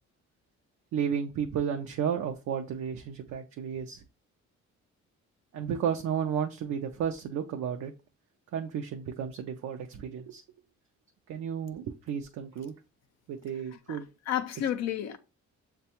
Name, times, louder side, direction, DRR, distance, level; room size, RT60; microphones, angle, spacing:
voice 1, 0.9-4.0 5.5-7.9 8.5-10.4 11.3-12.7 13.3-14.1, right 8 dB, 65° right, 0.5 m, -33 dB
voice 2, 13.9-15.2, left 10 dB, 60° left, 0.5 m, -32 dB
6.7 x 2.2 x 2.8 m
cardioid pair, 90°, 30 cm